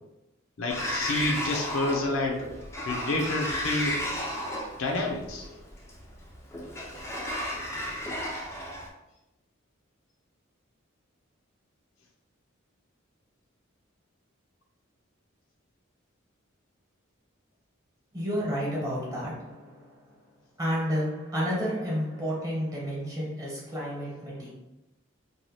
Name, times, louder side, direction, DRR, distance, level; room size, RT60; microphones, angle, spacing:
voice 1, 0.6-2.4 2.8-4.0 4.8-5.5, left 2 dB, 80° left, 1 dB, 0.6 m, -29 dB
Sliding door, 0.7-8.9, left 1 dB, 15° left, 0.4 m, -33 dB
voice 2, 18.1-19.9 20.6-24.5, equal, 15° right, -5 dB, 1.0 m, -31 dB
2.7 x 2.2 x 3.1 m, 0.93 s
head